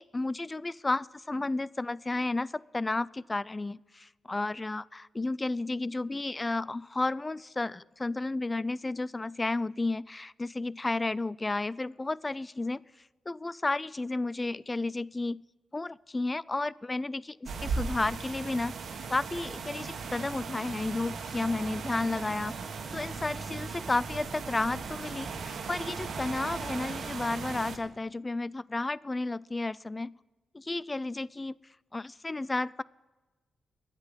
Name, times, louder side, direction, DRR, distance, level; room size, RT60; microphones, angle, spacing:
voice 1, 0.0-12.8 13.3-15.4 15.7-18.7 19.1-22.6 22.9-30.2 30.5-31.6 31.9-32.8, left 2 dB, 25° left, 22 dB, 0.3 m, -32 dB
sound 1, 17.5-27.8, right 4 dB, 75° right, 1.4 m, -37 dB
10.5 x 8.6 x 8.9 m, 1.2 s
cardioid pair, 70°, 0 cm